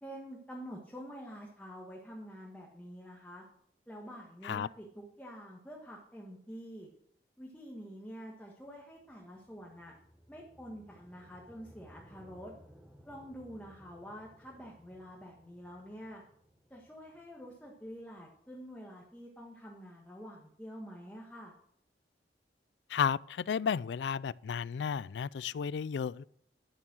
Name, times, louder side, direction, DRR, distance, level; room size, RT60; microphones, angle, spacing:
voice 1, 0.0-3.4 3.9-6.9 7.4-9.9 10.3-12.5 13.0-16.2 16.7-21.5, equal, 10° left, 1.6 m, -47 dB
sound 1, 8.6-18.8, equal, 10° right, 1.2 m, -60 dB
voice 2, 22.9-26.2, left 7 dB, 85° left, 0.3 m, -33 dB
11.5 x 7.3 x 6.2 m
head